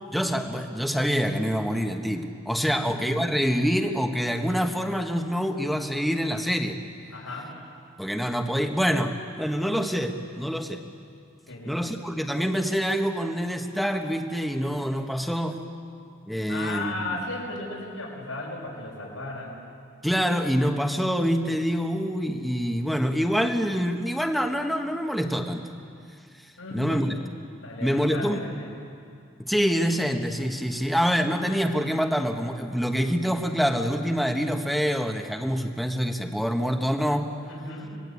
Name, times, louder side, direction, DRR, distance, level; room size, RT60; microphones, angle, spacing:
voice 1, 0.1-6.8 8.0-10.8 11.7-15.6 16.3-17.2 20.0-25.7 26.7-27.1 27.8-28.4 29.4-37.3, equal, ahead, 4 dB, 1.4 m, -26 dB
voice 2, 2.6-2.9 7.1-7.5 11.5-11.9 16.5-19.5 26.6-27.2 27.6-28.7 37.4-38.0, left 2 dB, 90° left, -4 dB, 6.0 m, -35 dB
27.0 x 20.5 x 8.5 m, 2.4 s
head